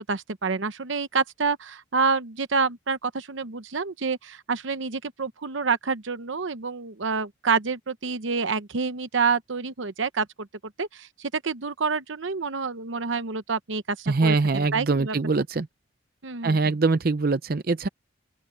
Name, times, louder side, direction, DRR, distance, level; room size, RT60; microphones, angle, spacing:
voice 1, 0.0-10.3 10.8-11.1 11.4-15.2 16.2-16.7, right 5 dB, 75° right, 0.9 m, -28 dB
voice 2, 14.1-15.7 16.4-17.9, right 3 dB, 50° right, 0.6 m, -23 dB
open air
head